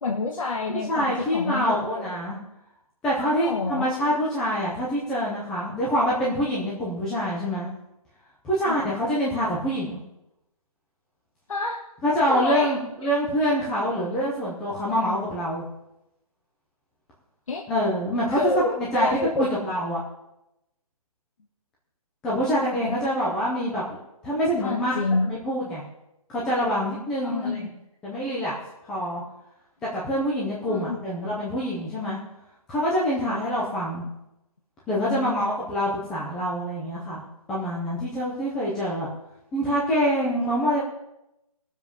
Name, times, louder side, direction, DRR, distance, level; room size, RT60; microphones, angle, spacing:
voice 1, 0.0-2.1 3.2-3.9 8.6-8.9 11.5-11.8 12.3-12.7 17.5-17.6 18.3-19.5 22.7-22.9 24.6-25.3 27.2-27.7 30.7-31.0 33.2-33.4 35.1-35.5, left 3 dB, 60° left, 1 dB, 1.5 m, -28 dB
voice 2, 0.7-2.4 3.0-7.7 8.4-10.0 12.0-15.6 17.7-19.1 19.3-20.0 22.2-24.0 24.2-25.0 25.3-25.8 26.3-27.7 28.0-28.6 28.9-29.2 29.9-32.2 32.7-34.0 34.9-37.2 37.5-39.1 39.5-40.8, equal, 5° left, -7 dB, 0.6 m, -25 dB
17.5 x 7.2 x 5.3 m, 0.89 s
hypercardioid pair, 175°, 19 cm